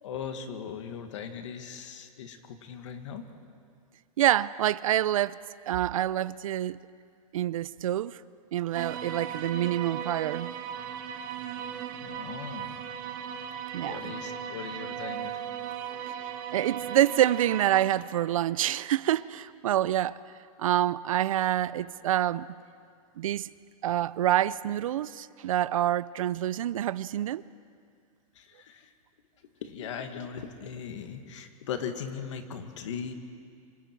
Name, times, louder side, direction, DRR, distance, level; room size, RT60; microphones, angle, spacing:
voice 1, 0.0-3.2 12.0-12.8 13.8-15.5 28.3-28.9 29.6-33.1, left 7 dB, 55° left, 1.9 m, -39 dB
voice 2, 4.2-5.4 5.7-6.8 7.3-8.2 8.5-10.5 13.7-14.0 16.5-20.2 20.6-22.5 23.2-23.5 23.8-27.4, right 12 dB, 65° right, 0.5 m, -27 dB
sound 1, 8.7-17.8, right 8 dB, 35° right, 1.3 m, -37 dB
27.0 x 26.5 x 4.6 m
supercardioid pair, 180°, 19 cm